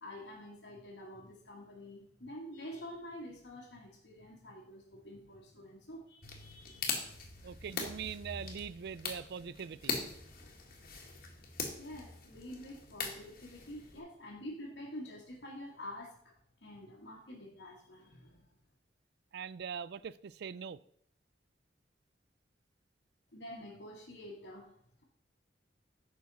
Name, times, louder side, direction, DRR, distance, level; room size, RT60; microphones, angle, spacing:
voice 1, 0.0-7.0 7.4-7.9 11.8-18.5 23.3-24.8, left 1 dB, 80° left, 1.8 m, -48 dB
sound 1, 6.2-14.0, left 4 dB, 55° left, 1.8 m, -42 dB
voice 2, 7.4-10.0 19.3-20.8, right 7 dB, 65° right, 0.4 m, -42 dB
9.6 x 6.3 x 4.1 m
head